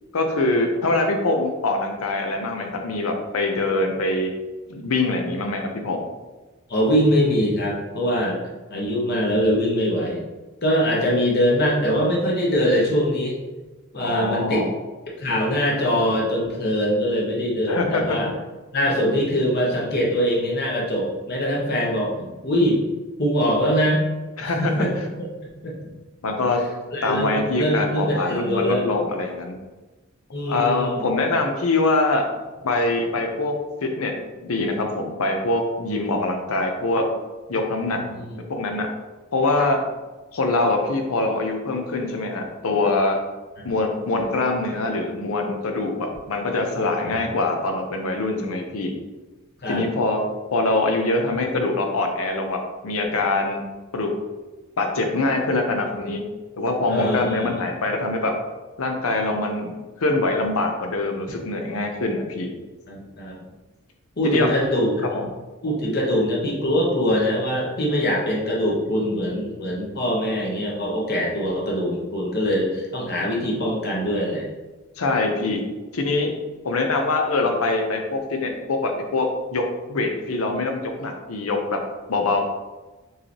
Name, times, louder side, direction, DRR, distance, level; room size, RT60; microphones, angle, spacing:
voice 1, 0.1-4.3 4.7-6.0 14.0-14.7 17.7-18.2 24.4-24.7 26.2-26.6 27.0-29.6 30.5-32.2 32.6-34.1 34.4-37.1 37.5-38.0 38.5-38.9 39.3-39.8 40.3-43.2 43.6-48.9 49.7-50.2 50.5-53.6 53.9-54.1 54.8-56.2 56.6-58.3 58.8-62.5 64.2-64.5 65.1-65.2 75.0-75.6 75.9-76.3 76.6-79.6 79.9-81.8 82.1-82.4, left 2 dB, 90° left, 3 dB, 0.7 m, -23 dB
voice 2, 6.7-8.4 8.7-10.2 10.6-13.3 13.9-14.6 15.2-18.3 18.7-22.9 23.2-24.0 24.4-24.9 25.2-25.3 25.6-25.7 26.9-28.8 30.3-31.1 37.9-38.4 43.6-43.7 47.1-47.2 49.6-49.8 56.9-57.5 62.9-63.4 64.2-65.2 65.6-74.5, equal, 50° left, -3 dB, 1.0 m, -23 dB
4.7 x 3.3 x 2.9 m, 1.2 s
head